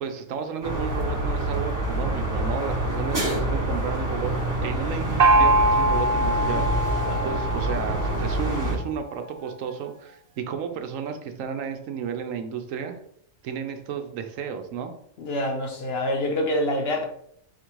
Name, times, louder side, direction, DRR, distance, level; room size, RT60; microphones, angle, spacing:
voice 1, 0.0-7.0 7.2-13.0 13.4-14.9, right 7 dB, 80° right, 6 dB, 1.0 m, -33 dB
sound 1, 0.6-8.8, right 1 dB, 15° right, 0.8 m, -27 dB
Gong, 5.2-8.7, right 2 dB, 60° right, 0.4 m, -23 dB
voice 2, 6.4-6.7 7.1-7.3 15.2-17.0, left 1 dB, 55° left, 3 dB, 0.8 m, -27 dB
4.2 x 2.5 x 4.5 m, 0.69 s
omnidirectional pair, 1.4 m